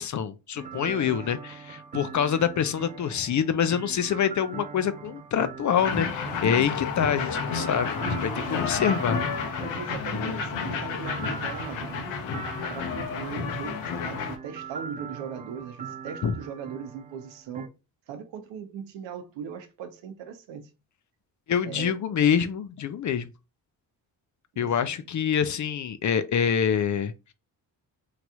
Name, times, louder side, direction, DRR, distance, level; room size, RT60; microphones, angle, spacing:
voice 1, 0.0-9.2 16.2-16.4 21.5-23.3 24.6-27.1, left 8 dB, 40° left, 0.5 m, -26 dB
sound 1, 0.6-17.7, right 6 dB, 20° right, 0.3 m, -41 dB
voice 2, 0.7-1.3 8.3-8.8 9.6-12.2 12.7-17.7 18.1-20.7 21.6-22.0 24.5-25.0, right 7 dB, 75° right, 0.8 m, -39 dB
sound 2, 5.8-14.4, left 5 dB, 75° left, 0.9 m, -31 dB
3.1 x 2.9 x 2.3 m
supercardioid pair, 50°, 45 cm